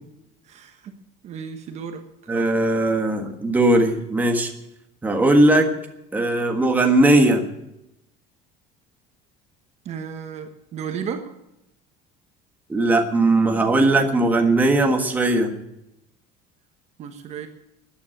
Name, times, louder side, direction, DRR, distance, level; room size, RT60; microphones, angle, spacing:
voice 1, 0.5-0.9 1.2-2.3 9.8-11.3 17.0-17.5, right 7 dB, 35° right, 6 dB, 1.3 m, -34 dB
voice 2, 2.3-4.5 5.0-5.7 6.1-7.4 12.7-15.5, right 2 dB, 10° right, 3 dB, 1.6 m, -18 dB
14.0 x 9.6 x 8.9 m, 0.86 s
cardioid pair, 180°, 19 cm